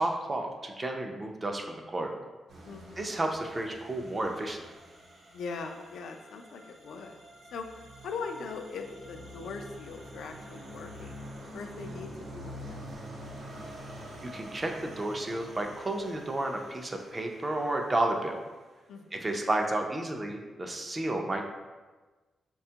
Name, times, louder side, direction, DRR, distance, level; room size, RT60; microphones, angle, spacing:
voice 1, 0.0-2.2 3.0-4.6 14.2-18.4 19.1-21.5, right 2 dB, 25° right, 3 dB, 0.4 m, -31 dB
sound 1, 2.5-18.6, equal, 85° right, 0.8 m, -46 dB
voice 2, 2.6-3.1 5.3-7.2 7.5-11.2 11.5-12.9 18.9-19.4, left 4 dB, 90° left, 5 dB, 0.3 m, -41 dB
4.9 x 2.2 x 2.7 m, 1.3 s
wide cardioid pair, 120°, 0 cm